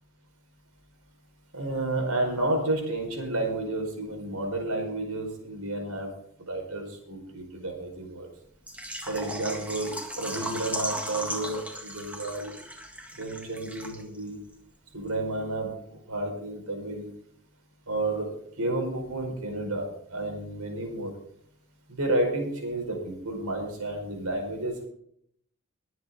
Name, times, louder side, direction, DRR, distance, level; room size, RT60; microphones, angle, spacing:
voice 1, 1.5-6.1 6.5-8.3 9.1-12.5 13.1-14.4 14.9-17.1 17.9-18.3 18.6-21.1 21.9-24.9, right 2 dB, 90° right, 2 dB, 5.0 m, -31 dB
Water / Liquid, 8.7-14.3 14.5-14.6 15.1-15.2, right 1 dB, 5° right, 1.8 m, -36 dB
22.5 x 8.1 x 3.8 m, 0.69 s
head